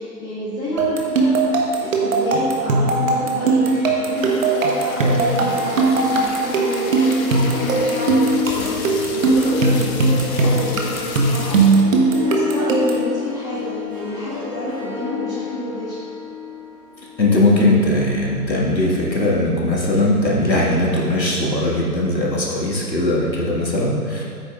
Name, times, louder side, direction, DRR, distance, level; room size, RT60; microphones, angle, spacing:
voice 1, 0.0-1.5 1.8-16.0, left 1 dB, 5° left, -11 dB, 0.7 m, -28 dB
sound 1, 0.8-13.1, right 3 dB, 50° right, 1.3 m, -19 dB
Harp, 3.4-18.8, left 8 dB, 25° right, 1.5 m, -31 dB
sound 2, 4.2-12.0 12.5-12.6 12.8-13.1 13.5-14.8, left 4 dB, 55° left, 0.9 m, -34 dB
voice 2, 17.2-24.2, left 1 dB, 90° left, -5 dB, 2.0 m, -19 dB
9.7 x 9.0 x 2.5 m, 2.4 s
figure-of-eight pair, 130°, 50 cm